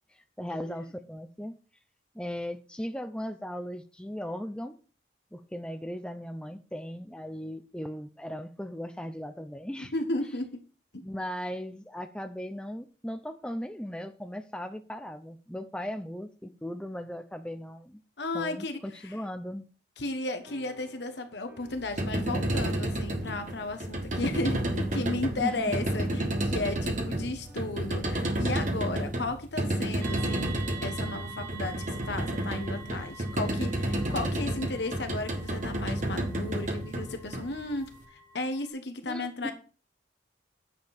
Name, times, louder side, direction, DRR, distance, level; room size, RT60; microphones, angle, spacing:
voice 1, 0.1-1.6 2.1-4.8 5.3-9.9 11.0-18.0 18.3-19.7 25.4-25.6 39.1-39.5, equal, 5° left, 0.6 m, -37 dB
voice 2, 9.8-10.6 18.2-19.2 20.0-30.5 30.8-39.5, left 2 dB, 65° left, 1.2 m, -34 dB
sound 1, 20.4-28.2, equal, 10° right, 4.6 m, -54 dB
sound 2, 21.7-37.9, right 1 dB, 40° right, 1.5 m, -31 dB
sound 3, 30.0-38.7, right 3 dB, 70° right, 2.1 m, -47 dB
9.6 x 6.9 x 4.3 m
head